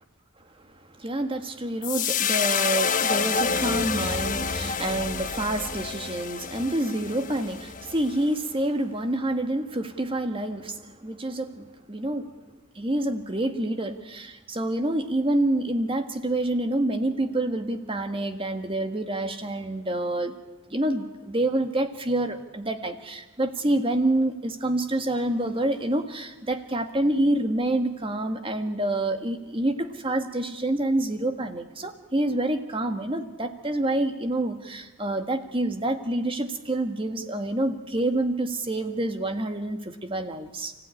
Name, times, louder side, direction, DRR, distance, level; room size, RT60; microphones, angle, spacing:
voice 1, 0.9-12.3 12.7-20.4 20.7-40.7, right 1 dB, 25° right, 7 dB, 1.7 m, -27 dB
sound 1, 1.8-8.2, left 6 dB, 40° left, 1.0 m, -28 dB
30.0 x 15.5 x 9.9 m, 1.2 s
head